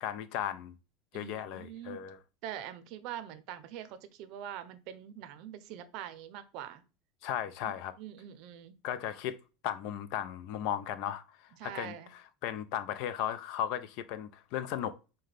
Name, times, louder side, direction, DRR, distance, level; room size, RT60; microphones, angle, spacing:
voice 1, 0.0-0.7 1.1-2.2 7.2-7.9 8.8-9.4 9.6-14.9, left 10 dB, 60° left, 0.5 m, -36 dB
voice 2, 1.1-2.0 2.4-6.8 7.6-8.7 11.6-12.1, right 10 dB, 60° right, 0.5 m, -44 dB
5.6 x 2.2 x 3.3 m
supercardioid pair, 115°, 0 cm